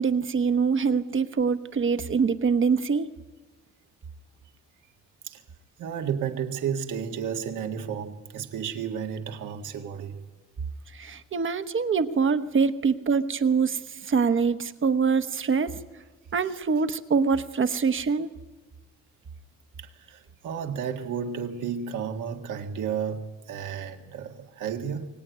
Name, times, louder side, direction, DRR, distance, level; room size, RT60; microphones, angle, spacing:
voice 1, 0.0-3.1 10.9-15.8 16.3-18.3, right 5 dB, 40° right, 1.1 m, -24 dB
voice 2, 5.8-10.2 19.8-25.1, right 7 dB, 80° right, 1.9 m, -32 dB
23.0 x 18.5 x 9.4 m
cardioid pair, 90°, 30 cm